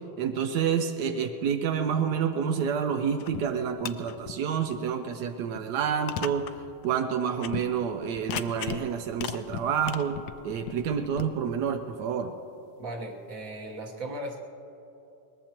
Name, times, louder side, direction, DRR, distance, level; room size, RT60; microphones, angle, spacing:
voice 1, 0.2-6.5 6.8-10.2 10.4-12.3, right 7 dB, 75° right, 6 dB, 0.9 m, -28 dB
sound 1, 3.2-3.4 3.7-4.3 4.8-4.9 5.6-5.7 6.1-6.5 6.8-6.9 7.4-7.6 8.1-8.8 9.1-11.2, left 10 dB, 75° left, 1.2 m, -36 dB
voice 2, 12.8-14.4, right 1 dB, 45° right, 1 dB, 1.5 m, -37 dB
22.0 x 19.5 x 3.0 m, 2.9 s
omnidirectional pair, 2.4 m